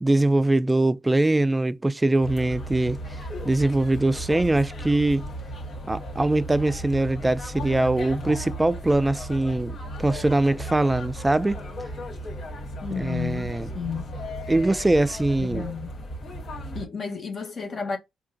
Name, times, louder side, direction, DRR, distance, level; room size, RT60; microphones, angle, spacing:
voice 1, 0.0-3.0 3.4-5.2 5.9-11.6 12.9-13.7 14.5-15.7, right 2 dB, 15° right, 0.4 m, -22 dB
sound 1, 2.2-16.9, equal, 65° left, 2.1 m, -35 dB
voice 2, 12.8-14.2 15.4-16.0 16.7-18.0, left 5 dB, 50° left, 1.3 m, -32 dB
3.7 x 2.5 x 3.9 m
cardioid pair, 75°, 0 cm